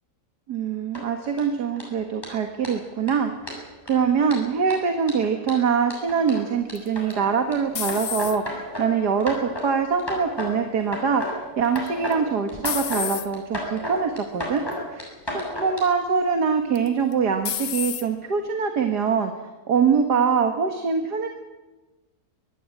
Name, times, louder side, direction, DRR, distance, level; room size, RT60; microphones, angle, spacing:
voice 1, 0.5-14.6 14.9-19.3 19.7-21.3, right 6 dB, 90° right, 5 dB, 2.2 m, -24 dB
sound 1, 0.9-1.4 1.8-1.9 2.2-2.3 2.6-2.7 3.1-3.2 3.5-3.9 4.3-7.5 7.9-8.8 9.2-9.7 10.0-10.5 10.8-11.3 11.6-12.2 12.5-13.0 13.3-15.8, left 1 dB, 15° left, 7.5 m, -32 dB
sound 2, 6.8-8.7 9.2-9.7 11.8-12.1 12.7-13.3 14.1-14.3 14.7-14.8 16.8-17.1 17.5-18.1, left 10 dB, 65° left, 1.3 m, -30 dB
24.0 x 17.5 x 8.7 m, 1.2 s
omnidirectional pair, 1.7 m